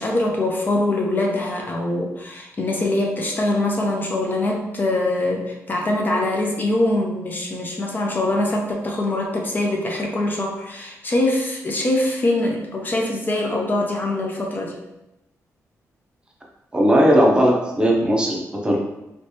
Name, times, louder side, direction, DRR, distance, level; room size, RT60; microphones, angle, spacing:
voice 1, 0.0-14.8, left 2 dB, 35° left, 0 dB, 0.6 m, -23 dB
voice 2, 16.7-18.8, equal, 15° right, -1 dB, 0.7 m, -17 dB
3.2 x 3.1 x 2.8 m, 0.92 s
cardioid pair, 105°, 6 cm